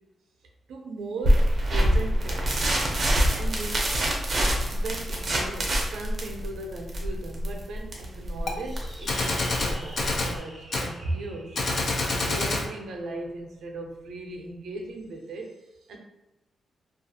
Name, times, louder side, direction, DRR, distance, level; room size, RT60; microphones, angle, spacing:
voice 1, 0.7-2.8 3.3-4.3 4.6-11.6 12.2-16.0, right 2 dB, 85° right, 2 dB, 0.5 m, -37 dB
sound 1, 1.2-10.4, equal, 35° right, 0.5 m, -25 dB
Gunshot gunfire, 8.5-8.6 9.1-10.4 10.7-10.9 11.5-12.7, left 2 dB, 45° left, 0.4 m, -27 dB
sound 2, 8.6-13.4, equal, 5° left, 0.7 m, -47 dB
2.4 x 2.3 x 2.7 m, 0.95 s
wide cardioid pair, 155°, 0 cm